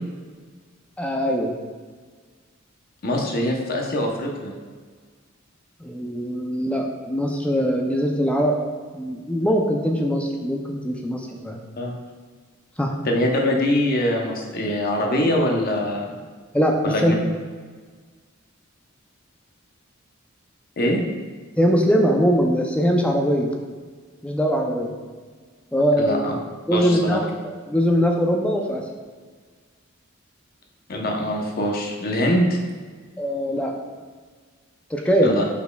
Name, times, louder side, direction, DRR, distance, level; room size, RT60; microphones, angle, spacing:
voice 1, 1.0-1.5 5.8-8.6 8.9-11.6 12.8-12.9 16.5-17.2 21.6-23.5 24.2-25.0 25.7-26.2 26.7-27.3 27.7-28.8 33.2-33.8 34.9-35.4, equal, 5° left, 1 dB, 0.4 m, -21 dB
voice 2, 3.0-4.5 11.8-11.9 13.0-16.1 16.8-17.1 20.8-21.0 26.0-26.3 26.7-27.2 30.9-32.6 35.2-35.5, left 1 dB, 45° left, 1 dB, 0.7 m, -23 dB
5.6 x 4.2 x 2.2 m, 1.5 s
head